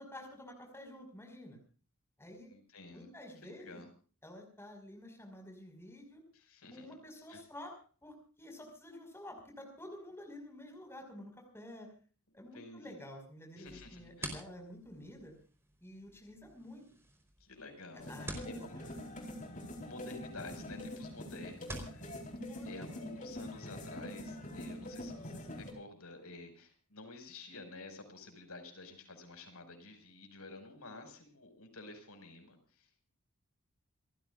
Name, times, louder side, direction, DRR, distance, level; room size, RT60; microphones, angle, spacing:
voice 1, 0.0-1.6 2.2-2.5 2.9-3.8 4.2-6.2 6.7-7.7 8.0-11.9 12.3-15.3 15.8-16.8 18.1-18.4 18.8-19.2 22.5-22.8, left 1 dB, 10° left, 3 dB, 5.6 m, -50 dB
voice 2, 2.5-3.1 3.4-3.9 6.3-6.9 7.3-7.4 12.5-12.9 13.6-14.3 17.4-18.1 18.4-18.8 19.8-22.1 22.6-33.1, left 2 dB, 85° left, 6 dB, 5.9 m, -50 dB
sound 1, 13.7-22.0, right 1 dB, 10° right, 4.3 m, -50 dB
sound 2, 18.0-25.7, left 1 dB, 35° left, 4.2 m, -44 dB
28.5 x 15.0 x 2.6 m, 0.40 s
head